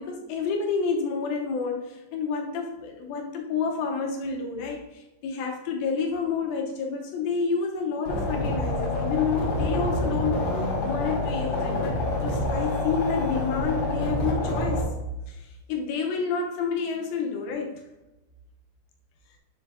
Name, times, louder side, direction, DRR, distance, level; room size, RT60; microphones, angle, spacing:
voice 1, 0.0-10.3 10.8-14.9 15.3-17.8, left 5 dB, 75° left, 1 dB, 2.3 m, -29 dB
sound 1, 8.1-14.8, left 2 dB, 50° left, 2.4 m, -27 dB
7.1 x 3.9 x 3.4 m, 1.0 s
omnidirectional pair, 4.9 m